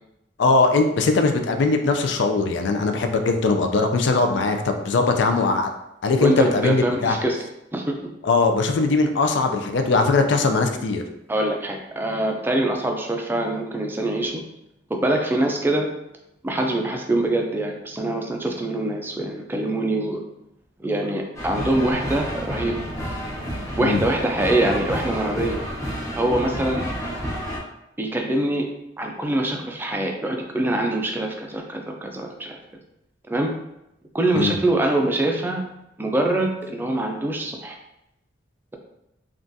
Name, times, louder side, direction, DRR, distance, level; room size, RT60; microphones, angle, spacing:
voice 1, 0.4-5.7 6.0-7.2 8.2-11.0 23.8-24.0 34.3-34.6, left 3 dB, 70° left, 5 dB, 0.4 m, -20 dB
voice 2, 6.2-7.4 7.7-7.9 11.3-14.4 14.9-15.9 16.4-20.2 20.8-22.7 23.8-25.6 26.2-26.9 28.0-28.7 29.0-32.6 33.3-33.5 34.1-35.6 36.0-37.8, right 1 dB, 10° right, 2 dB, 0.3 m, -24 dB
sound 1, 21.4-27.6, equal, 15° left, 0.7 m, -30 dB
3.7 x 2.3 x 2.6 m, 0.85 s
head